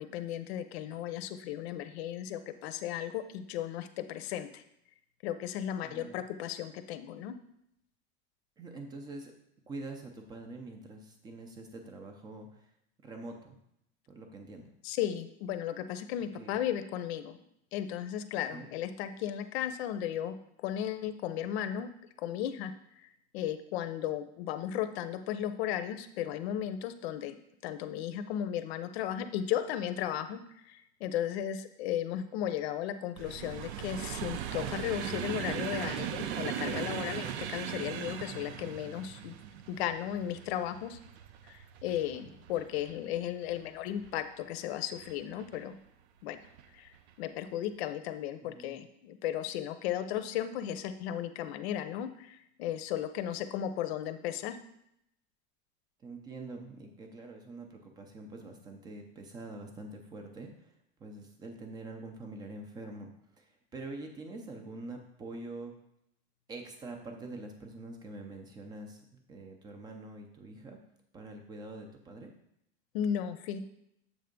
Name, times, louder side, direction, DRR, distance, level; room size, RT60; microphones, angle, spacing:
voice 1, 0.0-4.6 5.2-7.3 14.8-17.4 17.7-21.9 22.2-22.7 23.0-27.4 27.6-30.4 30.7-39.4 39.7-41.0 41.4-45.8 46.2-46.4 46.7-46.9 47.2-54.6 72.9-73.6, left 10 dB, 75° left, 10 dB, 0.7 m, -35 dB
voice 2, 5.8-6.2 8.6-9.3 9.7-12.7 13.0-13.6 14.1-14.7 16.4-16.6 18.5-18.7 42.1-42.4 48.4-48.8 56.0-60.7 61.0-63.1 63.4-65.7 66.5-70.8 71.1-72.3, right 2 dB, 15° right, 4 dB, 0.5 m, -45 dB
sound 1, 33.2-44.3 44.9-45.6 46.4-46.7 46.9-47.1, right 9 dB, 85° right, 0.7 m, -39 dB
7.4 x 3.4 x 5.2 m, 0.77 s
supercardioid pair, 175°, 32 cm